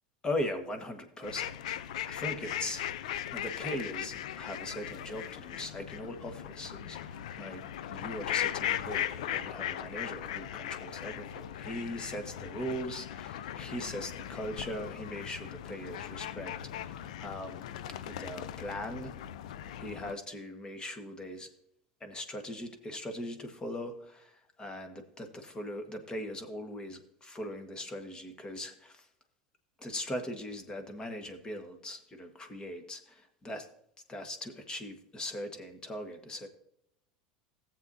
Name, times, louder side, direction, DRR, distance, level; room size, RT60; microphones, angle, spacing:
voice 1, 0.2-1.8 2.0-2.8 3.3-7.6 7.9-17.7 18.0-19.2 19.8-21.5 22.0-29.1 29.8-33.7 34.1-36.5, left 1 dB, 20° left, 6 dB, 1.7 m, -40 dB
sound 1, 1.2-20.1, left 11 dB, 75° left, 0.5 m, -38 dB
17.5 x 7.7 x 2.8 m, 0.76 s
hypercardioid pair, 85°, 4 cm